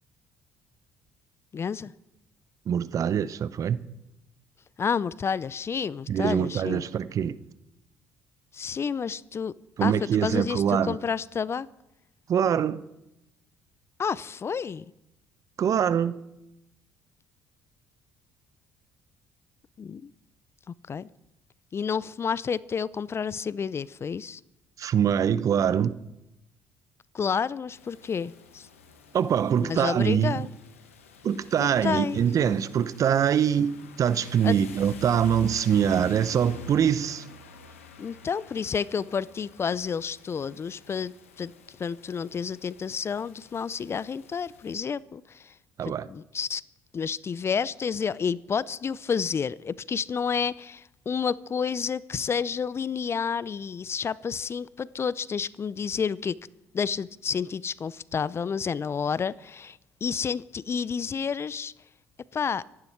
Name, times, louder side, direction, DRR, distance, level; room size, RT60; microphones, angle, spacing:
voice 1, 1.5-1.9 4.8-6.8 8.5-11.7 14.0-14.8 19.8-20.1 20.7-21.1 21.7-24.4 27.1-28.7 29.6-30.5 31.8-32.2 34.4-34.6 38.0-45.5 45.8-46.6 46.9-56.4 56.7-61.7 62.3-62.6, left 6 dB, 35° left, 0.6 m, -30 dB
voice 2, 2.7-3.8 6.1-7.4 9.8-11.0 12.3-12.8 15.6-16.2 24.8-26.0 29.1-30.5 31.2-37.3 45.8-46.1, right 8 dB, 50° right, 0.8 m, -24 dB
Rain, 27.7-44.8, left 6 dB, 90° left, 1.6 m, -48 dB
25.0 x 11.0 x 4.6 m
hypercardioid pair, 55°, 7 cm